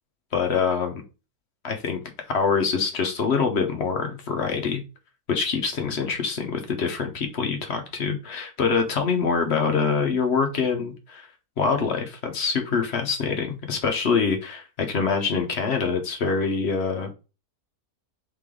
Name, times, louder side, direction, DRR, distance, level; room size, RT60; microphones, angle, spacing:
voice 1, 0.3-1.0 1.6-2.0 2.3-4.8 5.3-11.3 11.6-17.1, left 5 dB, 50° left, 5 dB, 0.9 m, -25 dB
3.7 x 3.3 x 3.6 m, 0.31 s
omnidirectional pair, 1.6 m